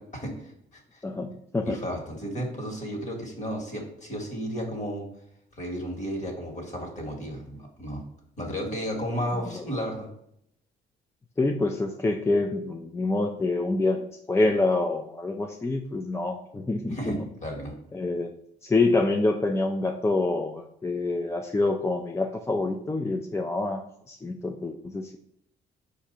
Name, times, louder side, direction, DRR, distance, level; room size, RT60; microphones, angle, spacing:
voice 1, 0.0-1.0 1.6-5.0 5.6-8.0 8.4-10.1 16.9-17.7, equal, 35° left, 1 dB, 1.5 m, -33 dB
voice 2, 1.0-1.8 9.3-9.7 11.4-17.3 17.9-18.3 18.6-25.2, left 2 dB, 15° left, 3 dB, 0.3 m, -27 dB
4.8 x 2.6 x 4.1 m, 0.73 s
cardioid pair, 90°, 20 cm